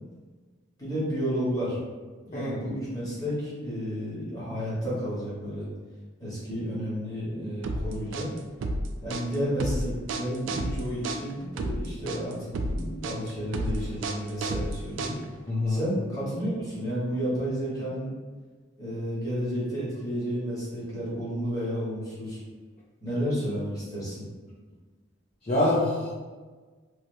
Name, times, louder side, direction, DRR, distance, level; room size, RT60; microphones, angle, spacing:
voice 1, 0.8-1.8 2.2-5.7 6.2-8.3 9.0-15.1 15.7-18.1 18.8-22.4 23.0-24.3, equal, 15° left, -9 dB, 1.3 m, -31 dB
voice 2, 2.3-2.7 15.5-15.8 25.5-26.1, left 1 dB, 35° left, -8 dB, 0.5 m, -25 dB
sound 1, 7.6-15.5, right 1 dB, 70° right, 0.3 m, -31 dB
3.1 x 2.8 x 2.6 m, 1.4 s
head